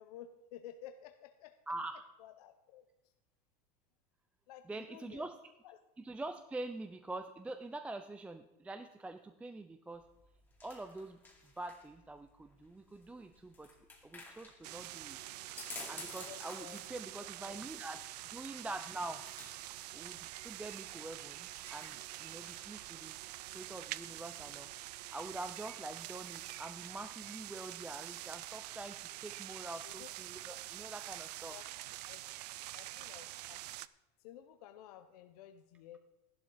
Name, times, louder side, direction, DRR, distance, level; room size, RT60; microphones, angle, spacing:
voice 1, 0.0-1.6 2.2-2.8 4.5-5.3 5.6-5.8 16.3-16.8 17.2-17.6 22.4-22.5 29.8-30.1 31.5-31.7 32.0-32.2 32.7-33.6 34.2-36.0, left 11 dB, 70° left, 8 dB, 0.9 m, -53 dB
voice 2, 1.7-2.1 4.7-5.4 6.0-10.0 10.6-11.2 11.6-13.7 14.0-15.2 15.9-18.0 18.3-19.2 19.9-23.1 23.5-31.6, right 2 dB, 5° right, 7 dB, 0.4 m, -45 dB
sound 1, 9.9-22.9, left 3 dB, 10° left, 2.3 m, -54 dB
sound 2, 14.6-33.9, right 16 dB, 75° right, 0.5 m, -46 dB
13.0 x 11.5 x 3.9 m, 0.99 s
supercardioid pair, 140°, 21 cm